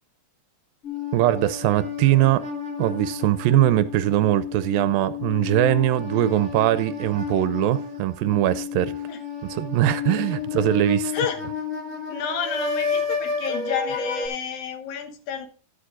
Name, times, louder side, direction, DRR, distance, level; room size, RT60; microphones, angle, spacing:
sound 1, 0.8-14.3, left 6 dB, 25° left, 1.9 m, -31 dB
voice 1, 1.1-2.4 2.8-9.0 9.5-11.1, right 14 dB, 80° right, 2.3 m, -21 dB
voice 2, 12.1-15.5, left 7 dB, 75° left, 2.8 m, -30 dB
12.0 x 11.5 x 2.5 m
omnidirectional pair, 4.3 m